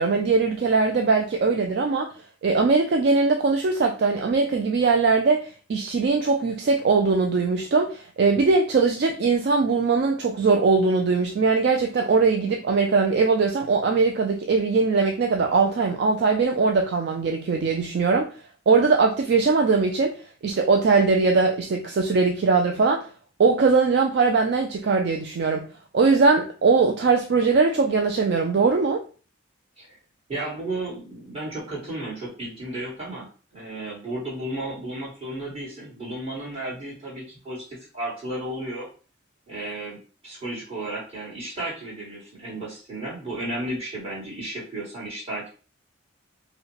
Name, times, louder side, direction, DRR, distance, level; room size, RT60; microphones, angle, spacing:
voice 1, 0.0-2.1 2.4-18.3 18.7-23.1 23.4-25.7 25.9-29.0, right 4 dB, 55° right, 3 dB, 0.3 m, -21 dB
voice 2, 30.3-38.9 39.5-40.0 40.2-45.5, right 1 dB, 30° right, -6 dB, 1.9 m, -33 dB
4.6 x 2.2 x 3.2 m, 0.37 s
head